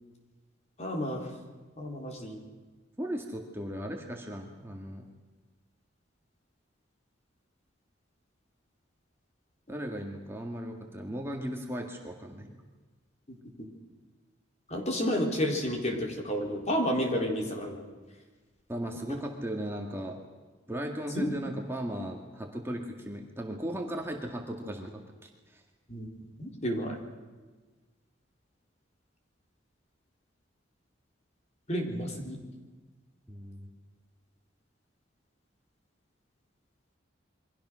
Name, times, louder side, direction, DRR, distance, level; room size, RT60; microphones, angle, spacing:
voice 1, 0.8-1.3 1.8-2.4 13.3-13.4 14.7-17.8 21.1-21.3 25.9-26.1 26.4-27.0 31.7-32.4, equal, 35° left, 2 dB, 4.1 m, -31 dB
voice 2, 3.0-5.0 9.7-12.6 18.7-20.2 20.7-25.0 25.5-25.6 33.3-33.6, equal, 10° right, 1 dB, 2.0 m, -36 dB
28.5 x 23.0 x 6.4 m, 1.3 s
head